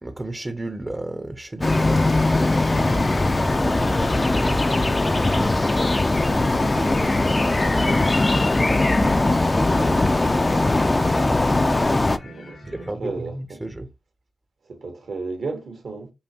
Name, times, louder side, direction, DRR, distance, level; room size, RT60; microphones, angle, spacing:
voice 1, 0.0-2.1 2.7-5.6 5.9-8.1 8.8-12.3 12.6-13.9, right 2 dB, 25° right, 0.6 m, -35 dB
sound 1, 1.6-11.1, left 3 dB, 85° left, 1.1 m, -43 dB
sound 2, 1.6-12.2, left 2 dB, 35° left, 0.5 m, -20 dB
sound 3, 6.2-12.9, left 2 dB, 60° left, 0.9 m, -43 dB
voice 2, 12.2-13.6 14.6-16.1, right 3 dB, 75° right, 1.3 m, -34 dB
5.4 x 2.2 x 2.9 m
cardioid pair, 45°, 0 cm